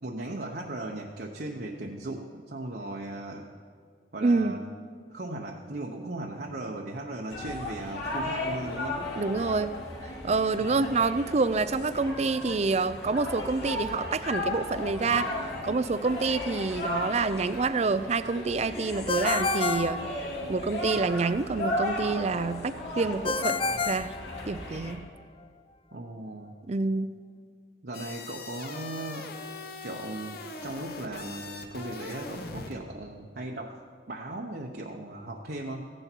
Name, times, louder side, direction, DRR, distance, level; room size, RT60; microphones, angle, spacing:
voice 1, 0.0-3.5 4.1-4.6 5.1-9.0 10.6-10.9 25.9-26.5 27.8-29.4 29.8-33.8 34.1-35.9, right 2 dB, 60° right, 0 dB, 0.9 m, -37 dB
voice 2, 4.2-4.6 9.2-9.8 10.0-15.3 15.6-20.1 20.5-23.6 23.9-24.1 24.5-25.0 26.7-27.2, right 3 dB, 40° right, 13 dB, 0.5 m, -27 dB
sound 1, 7.3-24.9, left 1 dB, 75° left, 2.6 m, -35 dB
Ringtone, 19.1-20.7 23.2-24.9, left 4 dB, 30° left, 0.3 m, -30 dB
sound 2, 27.9-32.8, left 3 dB, 60° left, 1.1 m, -41 dB
15.5 x 10.5 x 4.5 m, 2.1 s
head